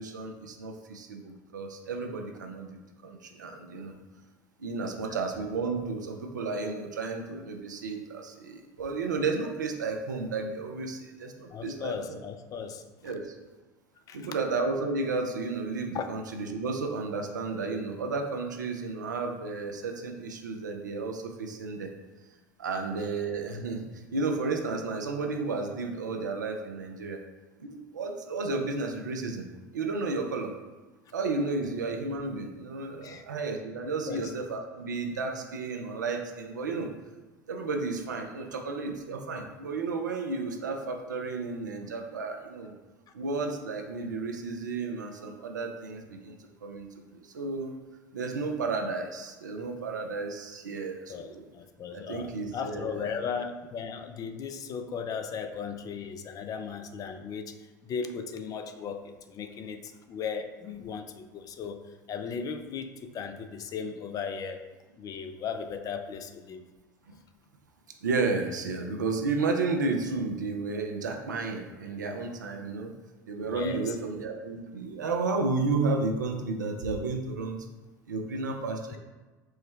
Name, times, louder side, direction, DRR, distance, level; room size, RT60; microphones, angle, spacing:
voice 1, 0.0-4.0 4.6-12.2 13.0-13.3 14.1-21.9 22.6-27.2 27.6-29.5 29.7-30.5 31.1-36.9 37.5-42.7 43.1-46.3 46.6-47.7 48.1-51.5 51.9-53.0 68.0-72.9 73.3-77.6 78.1-79.0, right 3 dB, 85° right, 3 dB, 0.4 m, -32 dB
voice 2, 4.9-5.2 11.5-12.8 14.1-14.3 15.9-16.1 22.7-22.8 33.0-33.2 34.1-34.3 51.1-57.6 57.8-61.8 62.1-64.7 65.0-66.6 73.4-74.0 78.9-79.0, left 6 dB, 40° left, 7 dB, 0.4 m, -37 dB
4.6 x 2.1 x 3.2 m, 1.2 s
hypercardioid pair, 70°, 10 cm